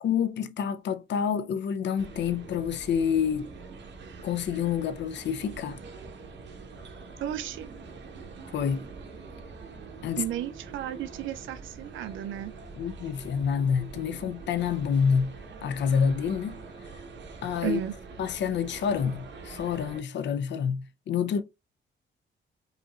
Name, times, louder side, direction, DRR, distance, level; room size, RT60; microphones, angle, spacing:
voice 1, 0.0-3.5 4.2-5.8 8.5-8.8 10.0-10.2 12.8-15.3 15.6-16.6 17.4-17.8 18.2-21.4, left 7 dB, 65° left, 0.5 m, -28 dB
sound 1, 2.0-20.0, right 4 dB, 70° right, 1.1 m, -44 dB
voice 2, 7.2-7.7 10.2-12.5 17.6-17.9, right 12 dB, 90° right, 0.4 m, -33 dB
5.4 x 2.9 x 2.3 m
cardioid pair, 115°, 20 cm